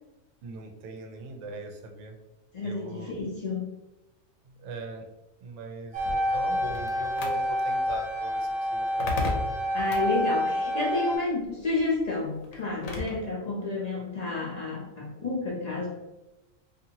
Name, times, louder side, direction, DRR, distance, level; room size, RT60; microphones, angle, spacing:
voice 1, 0.4-2.2 2.6-3.1 4.5-5.0 5.4-9.3, right 3 dB, 70° right, 4 dB, 0.9 m, -40 dB
voice 2, 2.5-3.7 9.7-15.9, left 3 dB, 40° left, -4 dB, 0.6 m, -30 dB
sound 1, 5.9-11.2, equal, 35° right, 0.6 m, -28 dB
sound 2, 6.0-13.3, left 2 dB, 85° left, 1.0 m, -37 dB
2.7 x 2.5 x 2.8 m, 0.99 s
omnidirectional pair, 1.4 m